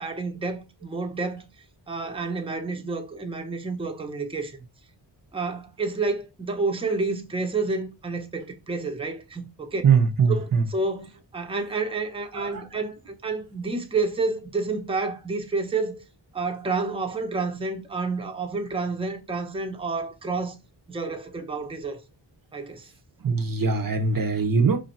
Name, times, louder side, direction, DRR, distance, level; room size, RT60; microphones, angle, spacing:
voice 1, 0.0-1.4 1.9-4.6 5.3-9.8 10.3-16.0 16.3-20.6 20.9-22.0 22.5-22.9, right 3 dB, 10° right, 0.7 m, -29 dB
voice 2, 9.8-10.6 12.3-12.6 23.2-24.8, right 5 dB, 50° right, 0.7 m, -21 dB
4.9 x 2.6 x 4.2 m
wide cardioid pair, 120°, 44 cm